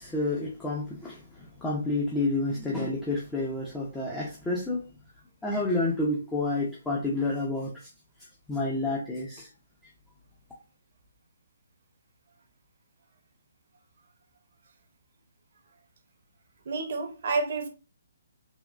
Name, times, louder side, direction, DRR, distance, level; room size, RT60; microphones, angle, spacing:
voice 1, 0.0-4.8 5.4-7.9 8.5-9.5, left 2 dB, 10° left, 0.6 m, -29 dB
voice 2, 16.7-17.7, right 3 dB, 55° right, 0.7 m, -29 dB
3.6 x 2.3 x 2.3 m
hypercardioid pair, 145°, 0 cm